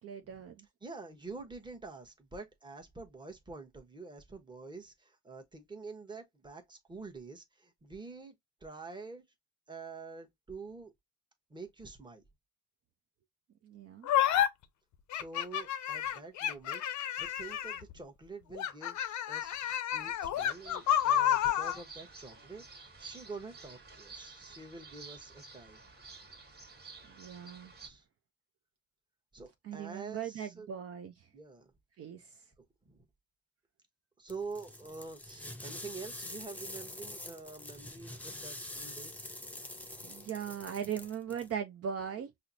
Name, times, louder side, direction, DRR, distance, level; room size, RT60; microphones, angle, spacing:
voice 1, 0.0-0.7 13.6-14.1 27.1-27.7 29.6-31.3 32.0-32.3 40.0-42.3, right 8 dB, 50° right, 0.5 m, -39 dB
voice 2, 0.8-8.3 8.6-9.2 9.7-10.9 11.5-12.2 15.1-16.8 17.2-25.8 27.7-28.0 29.3-30.7 31.3-31.7 32.8-33.1 34.2-39.3, right 4 dB, 15° right, 0.9 m, -47 dB
sound 1, 14.1-14.5 15.1-17.9 18.5-21.8, left 10 dB, 70° left, 0.6 m, -30 dB
sound 2, 20.3-27.9, right 4 dB, 35° right, 1.4 m, -52 dB
sound 3, 34.3-41.5, left 1 dB, 5° left, 0.5 m, -45 dB
5.6 x 2.0 x 2.6 m
cardioid pair, 90°, 30 cm